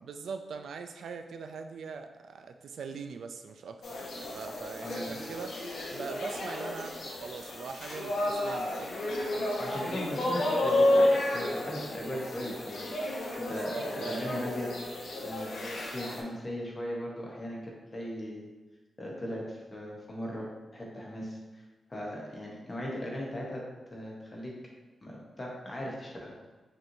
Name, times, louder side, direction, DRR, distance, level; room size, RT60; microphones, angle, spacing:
voice 1, 0.0-5.6 5.9-9.5 13.4-14.2, right 5 dB, 85° right, 6 dB, 0.3 m, -42 dB
sound 1, 3.8-16.2, left 1 dB, 85° left, 0.7 m, -31 dB
voice 2, 4.8-5.1 9.6-12.9 13.3-14.7 15.2-15.6 15.9-18.5 19.0-20.5 20.7-21.6 21.9-23.6 23.9-24.5 25.0-26.3, equal, 25° left, -3 dB, 0.8 m, -38 dB
5.2 x 3.0 x 2.7 m, 1.3 s
wide cardioid pair, 150°, 0 cm